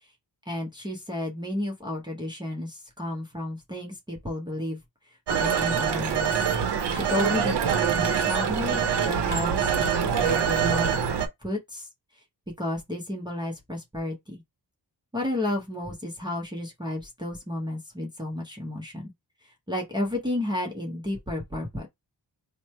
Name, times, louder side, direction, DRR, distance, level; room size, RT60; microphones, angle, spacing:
voice 1, 0.5-4.8 5.4-6.4 6.9-10.9 11.4-11.9 12.6-14.4 15.1-19.1 19.7-21.9, left 1 dB, 10° right, 0.7 m, -32 dB
Telephone, 5.3-11.3, right 7 dB, 70° right, 0.7 m, -25 dB
3.1 x 2.1 x 4.2 m
wide cardioid pair, 165°, 43 cm